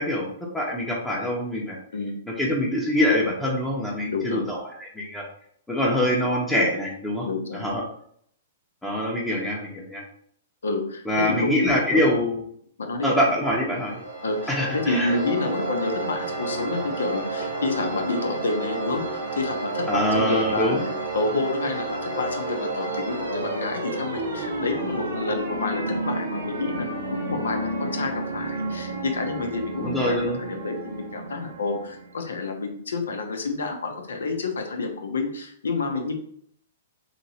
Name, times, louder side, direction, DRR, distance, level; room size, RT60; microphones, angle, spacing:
voice 1, 0.0-1.8 2.4-5.2 5.7-7.3 7.5-7.8 8.8-10.0 11.1-12.4 13.0-13.9 14.5-15.1 19.9-20.8 29.8-30.4, left 1 dB, 5° left, -3 dB, 0.8 m, -24 dB
voice 2, 4.1-4.4 7.2-7.6 10.6-12.0 12.8-13.1 14.2-36.1, left 3 dB, 75° left, 4 dB, 0.7 m, -29 dB
sound 1, 13.7-32.3, right 2 dB, 85° right, 0.8 m, -31 dB
3.0 x 2.8 x 2.8 m, 0.64 s
hypercardioid pair, 115°, 0 cm